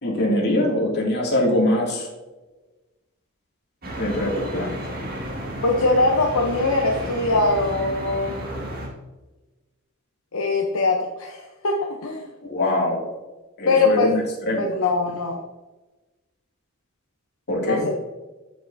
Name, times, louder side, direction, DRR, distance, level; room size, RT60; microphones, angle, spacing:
voice 1, 0.0-2.1 4.0-4.8 12.4-13.0 13.6-14.7 17.5-17.8, left 1 dB, 55° left, -2 dB, 2.4 m, -23 dB
sound 1, 3.8-8.9, equal, 45° right, 1.8 m, -32 dB
voice 2, 5.6-8.6 10.3-12.3 13.7-14.2 14.6-15.4 17.6-18.0, left 3 dB, 75° left, 1 dB, 0.8 m, -22 dB
8.3 x 7.5 x 2.7 m, 1.1 s
head